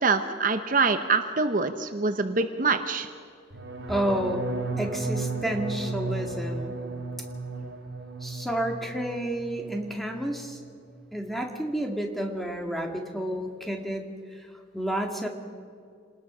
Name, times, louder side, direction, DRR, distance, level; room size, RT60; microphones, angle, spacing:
voice 1, 0.0-3.1, right 4 dB, 45° right, 8 dB, 0.9 m, -25 dB
sound 1, 3.5-9.4 9.7-10.2 10.5-10.9, right 2 dB, 80° right, 2.8 m, -34 dB
voice 2, 3.9-4.4 4.8-6.8 8.2-10.6 11.1-14.1 14.3-14.5 14.7-15.3, right 1 dB, ahead, 2 dB, 2.2 m, -30 dB
27.5 x 20.0 x 6.2 m, 2.3 s
head